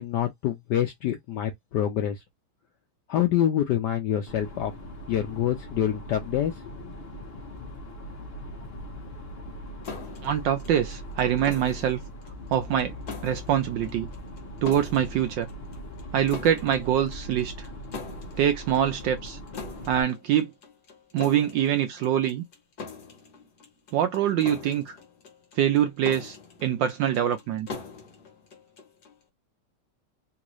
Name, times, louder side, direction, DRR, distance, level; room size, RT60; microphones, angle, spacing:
voice 1, 0.0-2.2 3.1-4.7 5.1-6.5 6.8-6.9, left 10 dB, 75° left, 1.0 m, -26 dB
sound 1, 4.3-20.0, equal, 90° left, 0.5 m, -40 dB
sound 2, 9.8-29.2, left 4 dB, 50° left, 1.4 m, -43 dB
voice 2, 10.2-12.0 12.5-12.9 13.2-14.1 14.6-15.5 16.1-17.7 18.4-19.4 19.9-20.5 21.1-22.4 23.9-24.9 25.6-27.7, right 10 dB, 75° right, 1.1 m, -24 dB
3.6 x 2.5 x 3.0 m
omnidirectional pair, 2.4 m